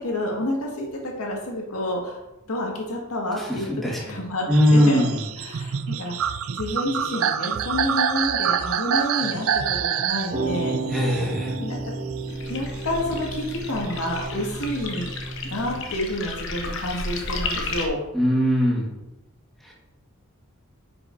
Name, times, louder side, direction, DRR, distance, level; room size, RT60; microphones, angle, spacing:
voice 1, 0.0-2.2 2.5-3.7 4.1-4.5 4.7-5.1 5.4-10.8 11.6-11.9 12.5-15.1 15.4-18.0, left 1 dB, 90° left, -1 dB, 1.8 m, -29 dB
voice 2, 3.4-4.2 4.5-5.2 10.9-11.6 18.1-18.9 19.6-19.7, equal, ahead, -4 dB, 1.5 m, -21 dB
sound 1, 4.5-12.5 12.9-15.2, right 8 dB, 70° right, 0.4 m, -27 dB
sound 2, 10.1-16.0, right 2 dB, 30° right, 1.7 m, -32 dB
sound 3, 12.3-17.9, left 3 dB, 55° left, 1.0 m, -33 dB
9.9 x 5.9 x 2.7 m, 0.99 s
head